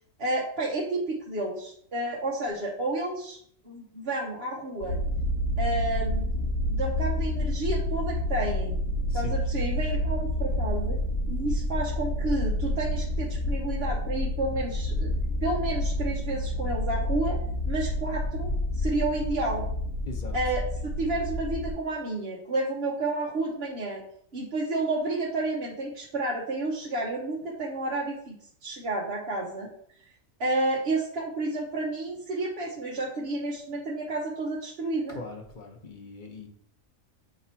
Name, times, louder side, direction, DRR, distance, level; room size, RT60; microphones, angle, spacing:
voice 1, 0.2-3.4 3.6-5.0 5.6-6.3 6.7-8.8 9.1-11.0 11.3-15.1 15.4-18.5 18.8-19.7 20.3-24.0 24.3-28.3 28.6-29.7 30.4-35.2, right 2 dB, 50° right, -3 dB, 1.1 m, -30 dB
sound 1, 4.8-21.7, left 1 dB, 65° left, 1.5 m, -29 dB
voice 2, 9.1-9.4 20.1-20.4 35.1-36.5, left 3 dB, 40° left, 3 dB, 1.0 m, -40 dB
8.3 x 4.7 x 2.8 m, 0.65 s
omnidirectional pair, 1.4 m